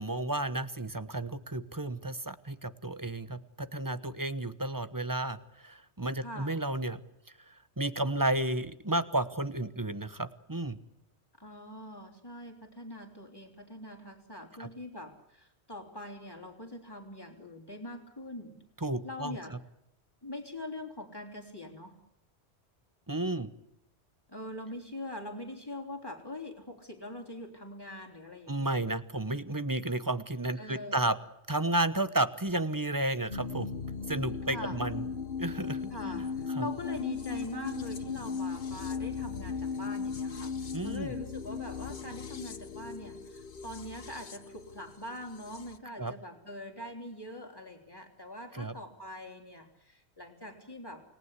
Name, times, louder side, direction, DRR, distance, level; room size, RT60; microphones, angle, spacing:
voice 1, 0.0-7.0 7.5-10.8 14.6-14.7 18.8-19.4 23.1-23.5 28.5-31.2 31.5-33.7 34.1-35.0 35.4-36.2 36.5-36.7 40.7-41.2 46.0-46.1 48.5-48.7, right 2 dB, 20° right, 12 dB, 1.0 m, -32 dB
voice 2, 6.2-6.6 11.4-18.6 19.0-19.6 20.2-22.0 24.3-28.7 30.6-31.1 34.5-34.8 35.9-40.5 40.8-51.0, left 1 dB, 20° left, 0 dB, 3.5 m, -43 dB
sound 1, 33.3-45.8, left 5 dB, 55° left, 1.3 m, -37 dB
29.0 x 19.0 x 8.3 m, 0.81 s
omnidirectional pair, 1.1 m